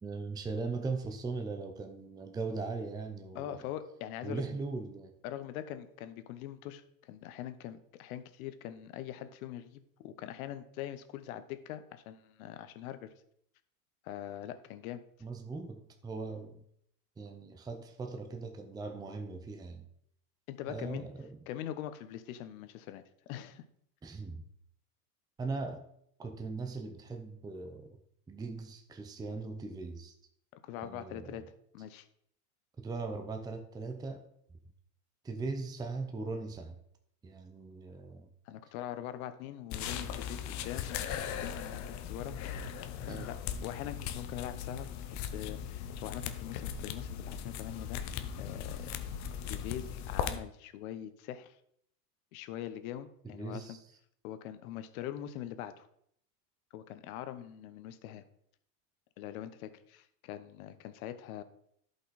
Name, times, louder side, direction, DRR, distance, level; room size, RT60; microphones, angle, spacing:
voice 1, 0.0-3.7 4.2-5.1 15.2-16.6 17.2-19.9 20.7-21.4 24.0-24.4 25.4-25.8 26.2-28.0 28.3-30.1 30.8-31.4 32.8-34.2 35.2-36.8 37.2-38.3 43.1-43.3 53.3-53.8, right 3 dB, 10° right, 5 dB, 0.7 m, -39 dB
voice 2, 3.3-4.4 5.2-13.1 14.0-15.0 20.5-21.0 21.5-23.0 23.3-23.6 30.5-31.4 31.7-32.1 38.4-42.7 43.1-43.4 43.6-48.0 48.3-48.9 49.5-51.6 52.3-53.8 54.2-55.9 56.7-58.2 59.2-61.4, left 11 dB, 65° left, 11 dB, 1.1 m, -43 dB
sound 1, 39.7-50.4, left 8 dB, 40° left, 0.8 m, -38 dB
11.5 x 5.5 x 4.1 m, 0.70 s
supercardioid pair, 130°, 45 cm